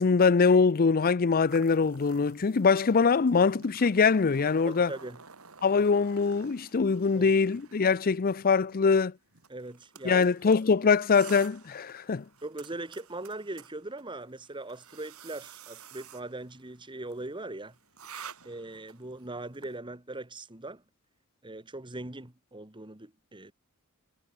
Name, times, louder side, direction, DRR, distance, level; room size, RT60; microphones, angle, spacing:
voice 1, 0.0-4.9 5.6-9.1 10.0-12.2, left 5 dB, 40° left, 0.5 m, -23 dB
sound 1, 1.5-19.8, right 7 dB, 70° right, 4.0 m, -52 dB
voice 2, 4.7-5.2 7.1-7.4 9.5-10.3 12.4-17.8 18.4-20.8 21.4-23.5, right 2 dB, 20° right, 1.8 m, -40 dB
head